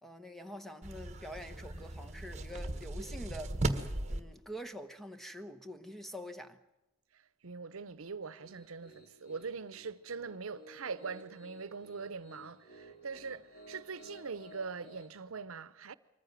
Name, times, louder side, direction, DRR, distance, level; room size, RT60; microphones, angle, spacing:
voice 1, 0.0-3.6 4.1-6.6, equal, ahead, 1.0 m, -45 dB
sound 1, 0.8-4.2, right 1 dB, 35° right, 1.5 m, -37 dB
voice 2, 7.1-15.9, right 5 dB, 85° right, 0.8 m, -42 dB
Piano, 8.2-15.1, right 1 dB, 50° left, 5.8 m, -56 dB
24.0 x 15.0 x 9.2 m
head